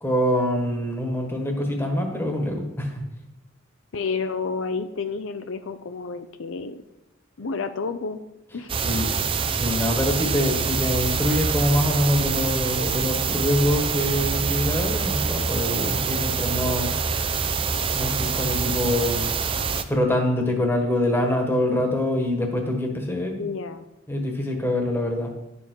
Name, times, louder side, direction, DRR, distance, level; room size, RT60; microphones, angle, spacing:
voice 1, 0.0-3.0 8.8-9.1 9.5-16.9 17.9-19.3 19.9-23.5 24.1-25.3, left 1 dB, 10° left, 3 dB, 1.4 m, -25 dB
voice 2, 3.9-6.8 7.4-8.2 8.5-8.7 23.4-23.8, left 4 dB, 70° left, 10 dB, 0.5 m, -30 dB
sound 1, 8.7-19.8, right 5 dB, 25° right, 0.5 m, -25 dB
11.0 x 6.9 x 4.6 m, 0.95 s
head